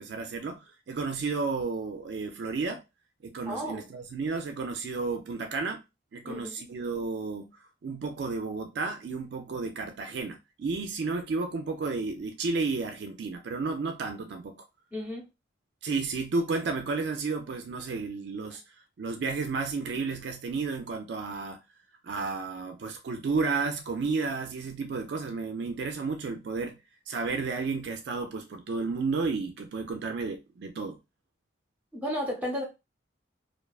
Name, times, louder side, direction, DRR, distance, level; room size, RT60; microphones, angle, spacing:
voice 1, 0.0-2.8 3.2-5.8 6.1-14.6 15.8-18.6 19.0-21.6 22.0-26.8 27.1-31.0, right 4 dB, 60° right, 0.3 m, -32 dB
voice 2, 3.5-3.9 6.2-6.5 14.9-15.2 31.9-32.6, equal, 10° right, 0.8 m, -33 dB
2.4 x 2.3 x 2.3 m
head